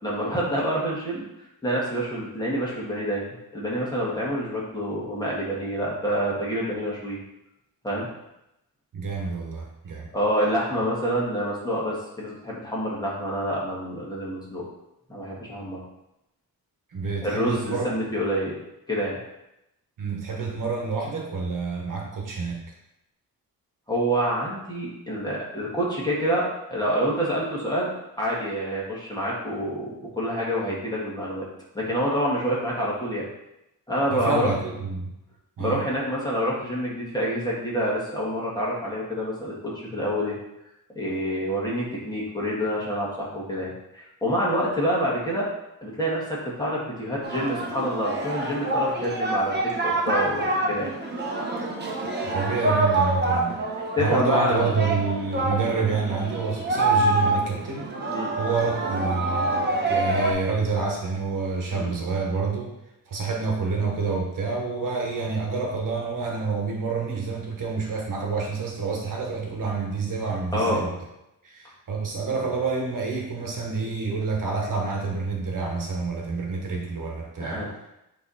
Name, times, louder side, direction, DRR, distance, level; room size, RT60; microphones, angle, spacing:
voice 1, 0.0-1.2 1.6-7.2 7.8-8.1 10.1-14.6 15.1-15.8 17.2-18.6 18.9-19.2 23.9-27.9 28.2-31.5 31.7-33.3 33.9-34.5 35.6-40.3 41.0-45.5 45.8-50.9 54.0-54.7 58.1-58.3 61.7-61.9 70.5-70.8 77.4-77.7, equal, 10° left, -5 dB, 1.9 m, -27 dB
voice 2, 8.9-10.1 10.8-10.9 16.9-17.9 20.0-22.6 34.1-35.1 35.6-35.8 52.2-53.6 54.0-57.9 58.4-62.7 63.1-70.9 71.4-77.7, right 4 dB, 65° right, 0 dB, 1.3 m, -28 dB
Singing, 47.2-60.3, right 2 dB, 30° right, 1.1 m, -26 dB
8.6 x 3.4 x 4.1 m, 0.87 s
wide cardioid pair, 140°, 34 cm